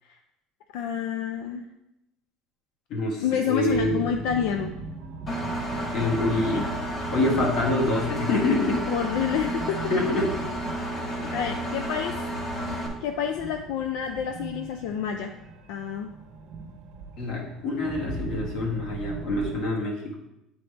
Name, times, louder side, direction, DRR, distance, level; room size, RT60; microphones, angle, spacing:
voice 1, 0.7-1.6 3.2-4.7 6.3-6.6 8.9-9.8 11.0-12.1 12.7-15.3 15.7-16.1, left 8 dB, 85° left, 5 dB, 0.4 m, -29 dB
voice 2, 2.9-4.1 5.9-6.6 7.1-8.9 9.9-10.3 17.2-20.1, left 2 dB, 55° left, -1 dB, 1.5 m, -26 dB
sound 1, 3.7-19.6, right 3 dB, 65° right, 0.9 m, -40 dB
Engine, 5.3-12.9, right 1 dB, 25° left, 1.1 m, -31 dB
8.0 x 4.1 x 3.3 m, 0.89 s
cardioid pair, 160°, 0 cm